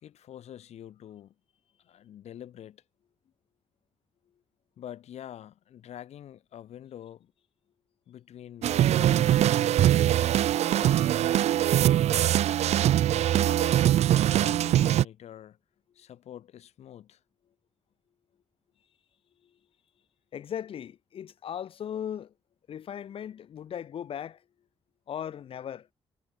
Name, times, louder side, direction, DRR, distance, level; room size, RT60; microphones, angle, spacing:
voice 1, 0.0-1.3 1.8-2.8 4.8-7.3 8.1-10.2 10.7-11.3 12.0-12.7 13.3-15.6 15.9-17.2, left 10 dB, 80° left, 5.3 m, -46 dB
sound 1, 8.6-15.0, right 12 dB, 85° right, 0.7 m, -22 dB
voice 2, 20.3-22.3 22.7-24.4 25.1-25.9, left 9 dB, 55° left, 1.8 m, -37 dB
wide cardioid pair, 180°, 11 cm